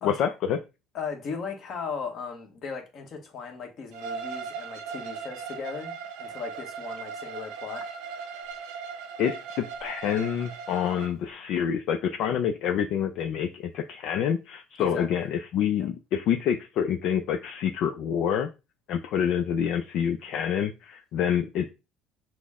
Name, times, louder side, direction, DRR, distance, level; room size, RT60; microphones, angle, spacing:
voice 1, 0.0-0.6 9.2-18.5 18.9-21.7, left 8 dB, 60° left, 0.4 m, -27 dB
voice 2, 0.9-5.9 6.2-7.8 14.8-15.3 15.8-15.9, left 5 dB, 40° left, 1.3 m, -37 dB
Bowed string instrument, 3.9-11.1, right 6 dB, 80° right, 0.7 m, -38 dB
6.0 x 2.1 x 3.6 m
cardioid pair, 140°, 0 cm